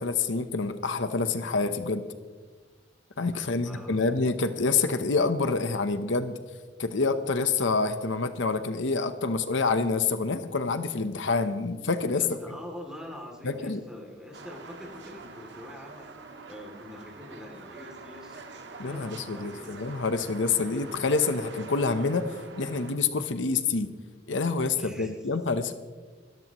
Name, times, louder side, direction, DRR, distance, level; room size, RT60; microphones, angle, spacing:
voice 1, 0.0-2.0 3.2-6.3 6.8-12.2 13.4-13.8 18.8-22.3 22.6-23.9 24.3-25.7, left 4 dB, 80° left, 10 dB, 0.9 m, -27 dB
voice 2, 3.3-4.1 12.1-18.5 18.8-19.8 24.8-25.3, left 1 dB, 5° right, 0 dB, 2.7 m, -44 dB
sound 1, 14.3-22.9, right 4 dB, 65° right, 1.6 m, -45 dB
25.5 x 14.0 x 3.1 m, 1.4 s
head